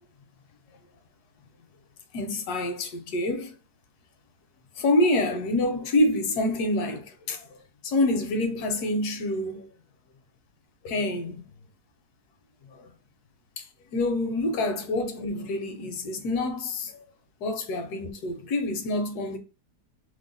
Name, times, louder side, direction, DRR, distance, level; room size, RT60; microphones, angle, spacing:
voice 1, 2.1-3.5 4.8-7.5 7.8-9.7 10.8-11.4 13.6-13.7 13.9-16.9 17.4-19.4, left 1 dB, 75° left, 1.2 m, -27 dB
3.1 x 2.1 x 3.8 m
omnidirectional pair, 1.7 m